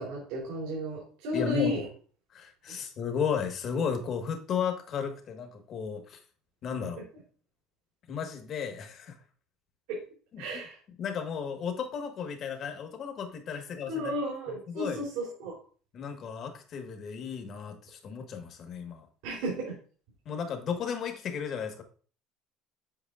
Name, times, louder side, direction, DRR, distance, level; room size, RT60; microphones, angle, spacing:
voice 1, 0.0-1.8 2.7-2.8 9.9-10.0 10.4-10.7 13.9-15.6 19.2-19.7, equal, 85° right, -6 dB, 3.4 m, -33 dB
voice 2, 1.3-1.9 2.3-6.2 6.6-7.0 8.1-9.2 10.3-10.6 11.0-14.1 14.5-15.0 15.9-19.1 20.2-21.8, left 7 dB, 45° left, 6 dB, 1.3 m, -34 dB
8.0 x 4.9 x 2.4 m, 0.41 s
cardioid pair, 125°, 0 cm